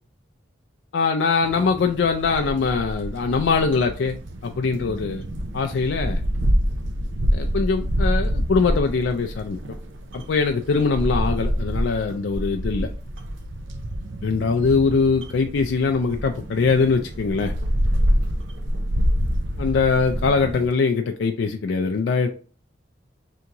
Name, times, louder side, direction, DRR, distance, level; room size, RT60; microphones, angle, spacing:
voice 1, 0.9-4.2 4.4-5.2 5.5-6.2 7.3-9.6 10.1-12.9 14.2-17.5 19.6-22.3, left 4 dB, 70° left, 5 dB, 0.4 m, -22 dB
sound 1, 1.4-20.7, equal, 75° right, 0.6 m, -27 dB
3.4 x 2.9 x 3.7 m, 0.38 s
head